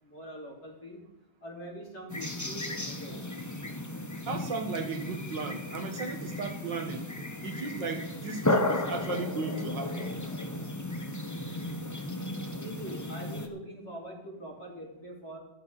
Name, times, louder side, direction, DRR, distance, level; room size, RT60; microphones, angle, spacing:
voice 1, 0.0-1.1 1.4-3.5 12.5-15.4, right 1 dB, 50° left, -3 dB, 4.3 m, -43 dB
sound 1, 2.1-13.5, left 1 dB, 30° left, 0.3 m, -34 dB
voice 2, 4.3-7.1 7.4-10.2, right 4 dB, 65° right, 5 dB, 2.0 m, -36 dB
14.0 x 13.5 x 4.1 m, 0.88 s
omnidirectional pair, 2.1 m